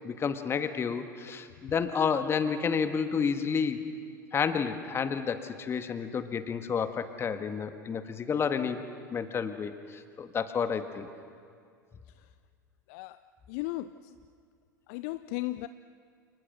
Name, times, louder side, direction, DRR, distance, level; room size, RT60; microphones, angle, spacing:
voice 1, 0.0-3.9 4.3-8.8 9.1-11.1, left 6 dB, 25° left, 9 dB, 1.8 m, -30 dB
voice 2, 13.5-13.9 14.9-15.7, left 18 dB, 50° left, 14 dB, 0.6 m, -34 dB
29.5 x 29.0 x 6.3 m, 2.2 s
figure-of-eight pair, 80°, 11 cm